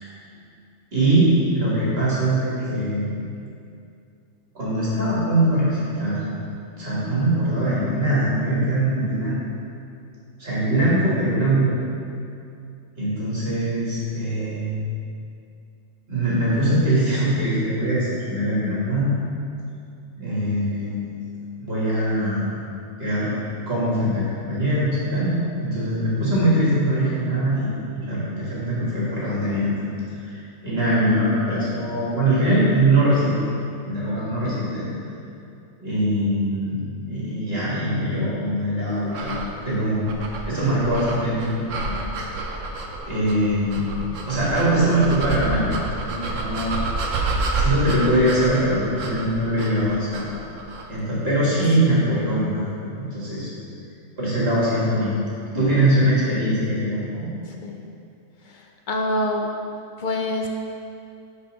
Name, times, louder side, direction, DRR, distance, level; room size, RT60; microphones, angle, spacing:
voice 1, 0.9-3.1 4.5-6.4 6.8-9.5 10.4-11.8 13.0-14.8 16.1-19.1 20.2-21.2 21.6-22.6 23.0-23.3 23.7-29.9 30.2-33.3 33.8-34.9 35.8-39.4 39.6-40.1 40.5-41.5 41.8-41.9 43.1-45.7 46.0-46.8 47.5-50.2 50.9-53.5 54.2-55.1 55.5-57.3, right 1 dB, 45° right, -8 dB, 2.1 m, -22 dB
sound 1, 39.1-51.0, right 2 dB, 70° right, 1.1 m, -29 dB
voice 2, 58.5-59.5 60.0-60.5, left 1 dB, 65° left, 2 dB, 0.4 m, -26 dB
5.5 x 4.8 x 6.4 m, 2.5 s
omnidirectional pair, 1.4 m